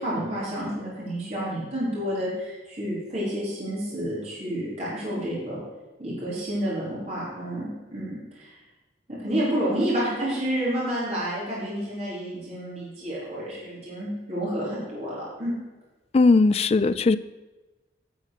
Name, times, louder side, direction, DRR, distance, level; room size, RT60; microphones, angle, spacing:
voice 1, 0.0-5.6 6.0-8.5 9.1-15.5, equal, 35° right, -7 dB, 4.3 m, -30 dB
voice 2, 16.1-17.2, left 3 dB, 35° left, 14 dB, 0.3 m, -18 dB
11.0 x 6.3 x 6.6 m, 1.1 s
head